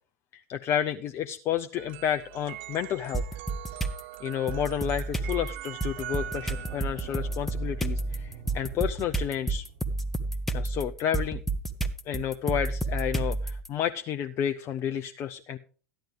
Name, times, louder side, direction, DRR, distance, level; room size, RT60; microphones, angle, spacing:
voice 1, 0.3-3.3 4.2-9.6 10.5-11.4 12.1-15.6, left 9 dB, 35° left, 8 dB, 0.6 m, -31 dB
sound 1, 1.8-9.0, right 13 dB, 55° right, 0.5 m, -43 dB
sound 2, 3.1-4.0 4.5-13.7, right 2 dB, 5° left, 1.0 m, -31 dB
sound 3, 6.1-10.4, right 5 dB, 75° right, 4.8 m, -48 dB
13.5 x 10.5 x 3.5 m, 0.40 s
figure-of-eight pair, 80°, 8 cm